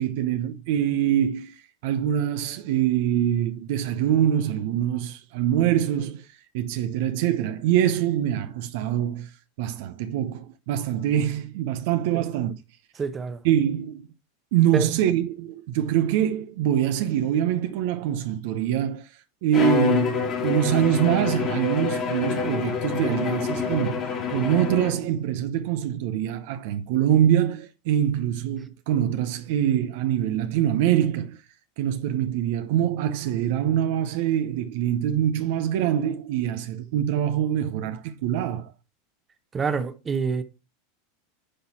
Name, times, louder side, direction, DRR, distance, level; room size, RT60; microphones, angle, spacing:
voice 1, 0.0-1.5 1.8-6.3 6.5-9.3 9.6-12.6 13.4-14.1 14.5-19.1 19.4-31.4 31.8-38.7, right 11 dB, 60° right, 0.7 m, -24 dB
voice 2, 13.0-13.4 14.7-14.9 39.5-40.4, right 5 dB, 25° right, 1.0 m, -27 dB
Bowed string instrument, 19.5-25.2, left 7 dB, 40° left, 2.2 m, -27 dB
10.0 x 4.0 x 4.3 m
hypercardioid pair, 90°, 0 cm